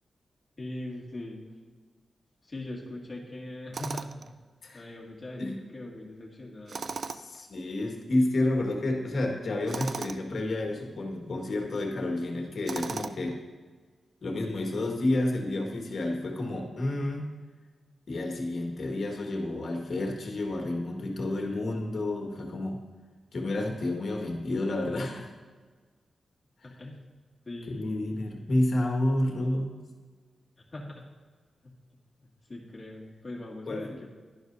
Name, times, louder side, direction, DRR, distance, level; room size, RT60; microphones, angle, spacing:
voice 1, 0.6-1.4 2.5-4.3 4.7-6.9 26.8-27.1 27.4-28.0 30.7-31.0 32.2-34.1, left 1 dB, 25° left, -3 dB, 2.2 m, -41 dB
Tools, 3.7-4.3 6.7-7.4 9.7-10.2 12.7-13.4, right 5 dB, 50° right, 0.4 m, -36 dB
voice 2, 7.1-13.4 14.2-17.3 18.1-22.9 23.3-25.3 26.6-26.7 27.7-29.8 33.7-34.0, left 1 dB, 55° left, 1 dB, 1.8 m, -30 dB
11.5 x 11.0 x 2.7 m, 1.4 s
wide cardioid pair, 140°, 0 cm